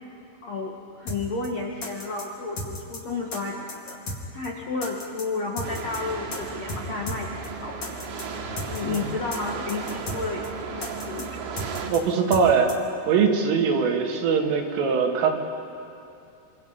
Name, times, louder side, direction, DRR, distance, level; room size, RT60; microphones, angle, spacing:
voice 1, 0.4-7.8 8.7-11.3, left 3 dB, 70° left, -1 dB, 1.6 m, -32 dB
sound 1, 1.1-1.2 1.4-1.5 1.8-2.2 2.6-3.0 3.3-3.4 3.7-4.2 4.4-4.5 4.8-5.2 5.6-6.0 6.3-6.4 6.7-6.8 7.1-7.2 7.4-7.5 7.8-8.2 8.6-9.0 9.3-9.4 9.7-10.2 10.4-10.5 10.8-11.2 11.6-12.0 12.3-12.4 12.7-12.8, left 2 dB, 40° left, 2.6 m, -34 dB
sound 2, 5.6-11.9, right 5 dB, 70° right, 4.0 m, -35 dB
voice 2, 11.9-12.7 13.1-15.3, right 6 dB, 90° right, 2 dB, 4.5 m, -21 dB
27.0 x 26.5 x 5.7 m, 2.6 s
omnidirectional pair, 5.6 m